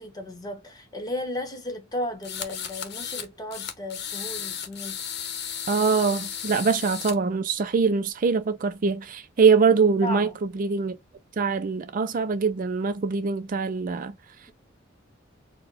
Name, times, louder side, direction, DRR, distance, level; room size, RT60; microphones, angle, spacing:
voice 1, 0.0-5.0 10.0-10.4, left 1 dB, 20° left, 1.1 m, -34 dB
sound 1, 2.2-3.3 3.5-7.1, left 8 dB, 55° left, 0.8 m, -34 dB
voice 2, 5.7-11.0 11.4-14.1, right 5 dB, 40° right, 0.4 m, -23 dB
4.4 x 2.1 x 3.9 m
head